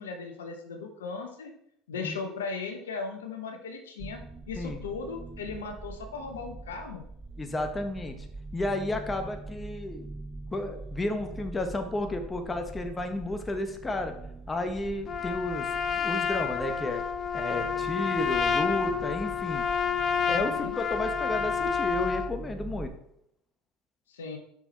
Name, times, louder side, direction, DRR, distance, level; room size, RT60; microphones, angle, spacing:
voice 1, 0.0-1.5 1.9-4.2 4.5-7.0 20.1-20.8 24.1-24.4, left 4 dB, 85° left, 5 dB, 0.8 m, -37 dB
sound 1, 4.0-22.9, right 3 dB, 20° right, 0.7 m, -43 dB
voice 2, 7.4-8.2 8.5-10.1 10.5-14.1 14.5-17.0 17.3-19.6 20.3-22.9, left 2 dB, 20° left, 6 dB, 1.0 m, -32 dB
Trumpet, 15.1-22.3, left 6 dB, 40° left, 0.6 m, -29 dB
5.7 x 4.7 x 4.1 m, 0.74 s
hypercardioid pair, 75°, 0 cm